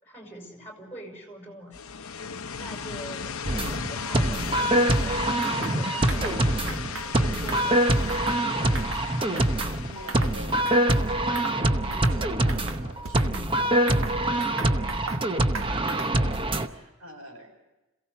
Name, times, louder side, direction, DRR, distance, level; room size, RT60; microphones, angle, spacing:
voice 1, 0.0-2.1 2.5-6.5 7.2-8.3, equal, 10° left, 2 dB, 5.3 m, -43 dB
sound 1, 1.7-12.4, left 6 dB, 90° left, 0.7 m, -37 dB
sound 2, 3.5-16.7, right 1 dB, 25° right, 0.9 m, -25 dB
sound 3, 5.4-5.8 6.1-6.4 6.7-7.1 7.4-8.4 8.7-9.1 9.4-10.4 10.6-11.0 11.3-11.6 11.9-12.2 12.5-13.5 13.9-15.2 15.5-16.2, right 4 dB, 70° right, 1.7 m, -37 dB
voice 2, 9.2-17.5, right 1 dB, 85° right, 3 dB, 5.1 m, -46 dB
27.5 x 16.5 x 6.7 m, 1.1 s
head